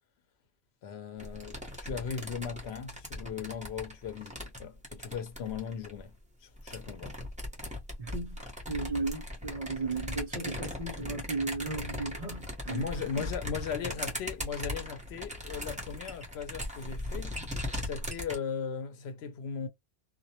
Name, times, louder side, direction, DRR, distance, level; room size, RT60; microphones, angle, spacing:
voice 1, 0.8-6.1 6.4-7.2 12.7-17.4 17.8-19.7, left 6 dB, 90° left, 0.9 m, -38 dB
sound 1, 1.2-6.0 6.6-18.4, left 1 dB, 10° right, 0.7 m, -39 dB
voice 2, 8.0-12.9 13.2-13.4, right 3 dB, 45° right, 0.6 m, -35 dB
2.2 x 2.1 x 2.8 m
omnidirectional pair, 1.1 m